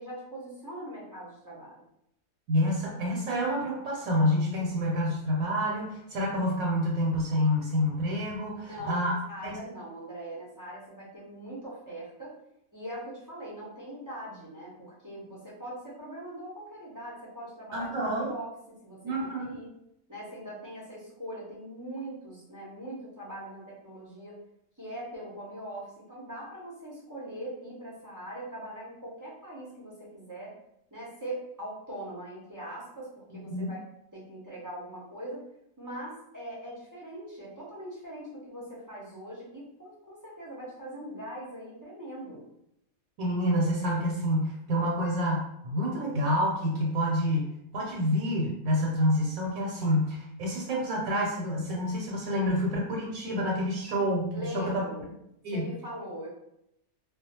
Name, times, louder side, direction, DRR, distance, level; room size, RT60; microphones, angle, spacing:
voice 1, 0.0-1.7 8.5-12.3 12.7-19.7 20.1-24.4 24.8-30.5 30.9-33.8 34.1-35.4 35.8-42.4 54.3-55.1 55.5-56.3, right 1 dB, 20° right, -8 dB, 0.5 m, -41 dB
voice 2, 2.5-9.1 9.4-9.5 17.7-18.3 19.0-19.6 33.5-33.7 43.2-54.8 55.4-55.6, equal, 75° right, -2 dB, 1.0 m, -28 dB
2.4 x 2.2 x 2.8 m, 0.79 s
omnidirectional pair, 1.5 m